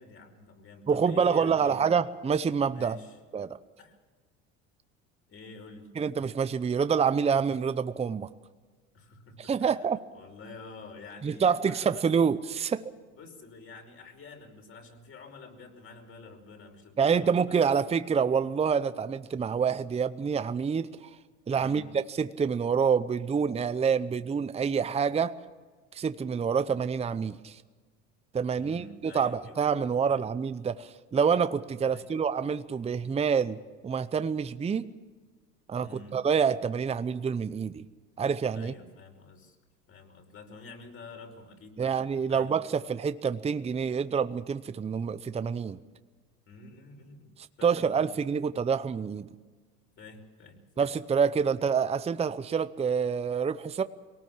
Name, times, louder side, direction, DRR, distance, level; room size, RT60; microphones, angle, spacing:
voice 1, 0.0-1.9 2.7-3.2 3.8-4.0 5.3-5.9 8.9-9.5 10.1-12.1 13.1-17.8 21.5-21.9 28.6-29.6 30.0-30.2 31.8-32.1 35.8-36.2 38.5-39.6 39.9-42.6 46.5-48.1 50.0-50.9, left 3 dB, 40° left, 3 dB, 5.1 m, -48 dB
voice 2, 0.9-3.0 3.3-3.6 6.0-8.3 9.4-10.0 11.2-12.8 17.0-21.1 21.5-25.3 25.9-27.6 28.3-34.9 35.7-37.9 38.2-38.7 41.8-45.8 47.6-49.3 50.8-53.8, right 6 dB, 20° right, 12 dB, 0.7 m, -27 dB
22.5 x 18.5 x 7.4 m, 1.4 s
supercardioid pair, 100°, 34 cm